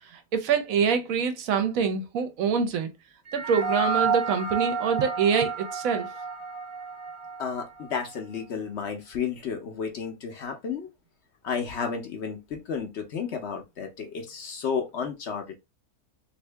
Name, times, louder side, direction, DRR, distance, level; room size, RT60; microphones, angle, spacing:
voice 1, 0.1-2.9 3.3-6.1, right 6 dB, 70° right, 1.0 m, -25 dB
sound 1, 3.3-7.9, right 4 dB, 45° right, 0.4 m, -30 dB
voice 2, 7.4-10.9 11.4-15.5, left 6 dB, 60° left, 0.8 m, -32 dB
2.8 x 2.6 x 3.2 m
omnidirectional pair, 1.6 m